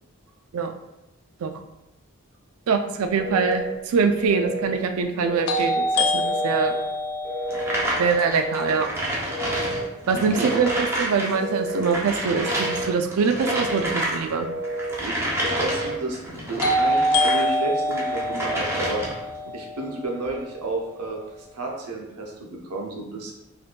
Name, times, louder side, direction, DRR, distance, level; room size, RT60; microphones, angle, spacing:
voice 1, 2.7-6.7 8.0-8.9 10.1-14.5, right 5 dB, 70° right, 6 dB, 0.4 m, -24 dB
Telephone, 3.2-3.7 4.2-4.8 5.2-5.8 6.2-6.8 7.2-7.8 8.3-8.8 9.3-9.9 10.3-10.9 11.3-11.9 12.3-12.9 13.3-13.9 14.4-15.0 15.4-16.0, right 1 dB, 35° left, 1.1 m, -31 dB
sound 1, 3.5-3.6 5.5-9.4 16.6-20.6, left 1 dB, 80° left, 0.5 m, -26 dB
sound 2, 7.5-11.3 11.6-17.5 17.9-19.3, right 1 dB, 10° right, 0.6 m, -29 dB
voice 2, 10.1-10.6 15.0-16.2 16.5-19.0 19.5-21.2 21.5-23.3, right 2 dB, 90° right, 0 dB, 0.8 m, -31 dB
5.0 x 2.6 x 2.2 m, 0.93 s
head